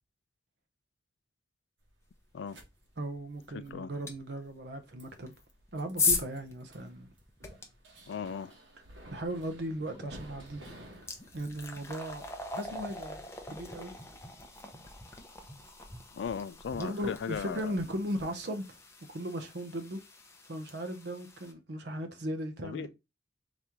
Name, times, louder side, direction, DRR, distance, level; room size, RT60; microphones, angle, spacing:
sound 1, 1.8-18.2, right 1 dB, 85° right, 1.3 m, -56 dB
voice 1, 3.0-5.3 5.7-7.1 9.1-10.6 11.3-12.2 12.6-13.2 13.5-13.9 16.7-18.8 19.1-20.0 20.5-22.9, right 1 dB, 65° right, 0.8 m, -37 dB
voice 2, 3.5-3.9 8.1-8.6 12.7-12.9 16.1-17.8 22.6-22.9, left 6 dB, 70° left, 0.3 m, -37 dB
sound 2, 4.1-4.2 5.2-7.6 9.9-10.1 10.5-21.5, left 4 dB, 15° left, 0.7 m, -38 dB
4.0 x 3.0 x 3.5 m
head